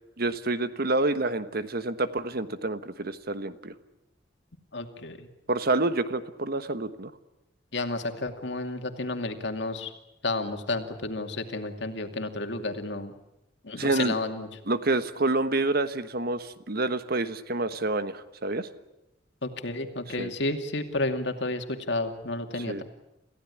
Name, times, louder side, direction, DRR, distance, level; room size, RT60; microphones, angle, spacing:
voice 1, 0.2-3.7 5.5-7.1 13.7-14.2 14.7-18.7 20.2-20.3 22.7-22.8, right 2 dB, 55° right, 12 dB, 1.3 m, -28 dB
voice 2, 4.7-5.3 7.7-9.9 10.2-13.1 13.6-14.5 19.4-22.8, left 2 dB, 65° left, 6 dB, 2.5 m, -31 dB
28.0 x 16.0 x 10.0 m, 0.91 s
head